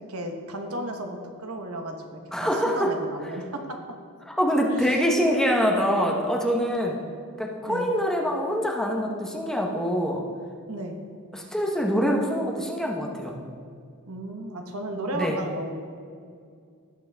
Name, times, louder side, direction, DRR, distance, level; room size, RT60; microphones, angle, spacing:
voice 1, 0.1-3.8 4.7-5.0 7.7-7.9 10.7-11.0 14.0-15.7, right 1 dB, 80° right, 4 dB, 1.2 m, -34 dB
voice 2, 2.3-2.9 4.4-7.0 7.4-10.2 11.3-13.4 15.1-15.4, equal, ahead, 0 dB, 1.0 m, -24 dB
18.0 x 6.1 x 3.5 m, 2.3 s
head